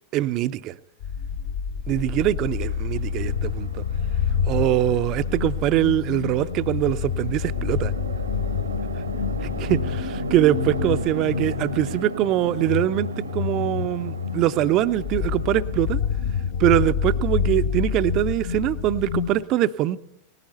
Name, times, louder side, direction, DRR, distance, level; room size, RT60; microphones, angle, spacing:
voice 1, 0.1-0.8 1.9-3.8 4.5-7.9 9.4-16.0 16.6-20.0, right 13 dB, 40° right, 14 dB, 0.5 m, -23 dB
sound 1, 1.0-19.3, left 7 dB, 50° left, 1.1 m, -28 dB
Chatter / Traffic noise roadway noise / Train, 2.5-15.9, right 2 dB, 80° right, 1.1 m, -36 dB
19.0 x 15.0 x 4.2 m, 0.72 s
figure-of-eight pair, 90°, 0 cm